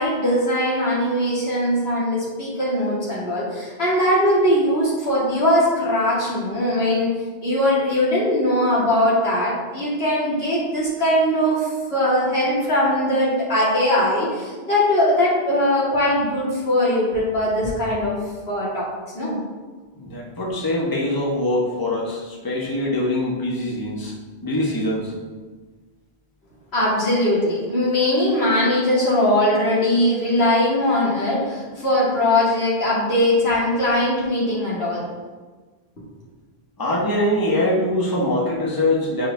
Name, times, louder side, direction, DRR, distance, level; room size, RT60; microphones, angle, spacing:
voice 1, 0.0-7.1 7.4-18.2 18.5-18.8 19.1-19.4 26.7-35.1, left 1 dB, 80° left, -8 dB, 2.5 m, -20 dB
voice 2, 20.0-24.1 24.4-25.1 36.8-39.3, left 1 dB, 20° left, -4 dB, 1.4 m, -23 dB
8.9 x 4.9 x 3.5 m, 1.4 s
omnidirectional pair, 1.0 m